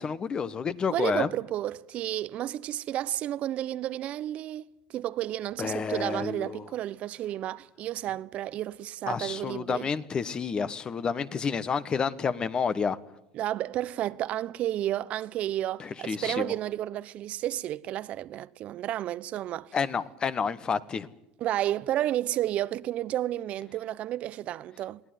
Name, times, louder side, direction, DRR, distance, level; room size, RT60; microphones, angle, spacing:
voice 1, 0.0-1.3 5.6-6.6 9.1-13.0 15.8-16.5 19.7-21.1, left 6 dB, 30° left, 1.3 m, -30 dB
voice 2, 0.9-9.8 13.3-19.8 21.4-25.0, right 13 dB, 50° right, 0.8 m, -31 dB
21.5 x 17.0 x 9.4 m
hypercardioid pair, 95°, 3 cm